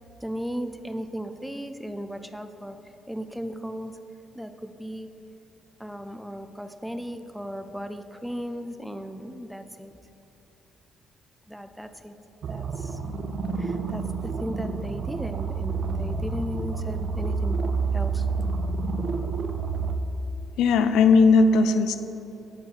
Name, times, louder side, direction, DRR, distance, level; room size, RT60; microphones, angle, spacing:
voice 1, 0.2-2.8 3.1-3.9 4.3-5.1 5.8-9.9 11.5-12.1 12.5-13.0 13.6-14.1 14.4-17.7 17.9-18.2, equal, ahead, 9 dB, 0.4 m, -36 dB
sound 1, 12.4-20.0, right 4 dB, 60° right, 0.4 m, -29 dB
voice 2, 20.6-22.0, left 4 dB, 90° left, 10 dB, 0.4 m, -18 dB
8.1 x 4.8 x 4.6 m, 2.9 s
cardioid pair, 90°, 0 cm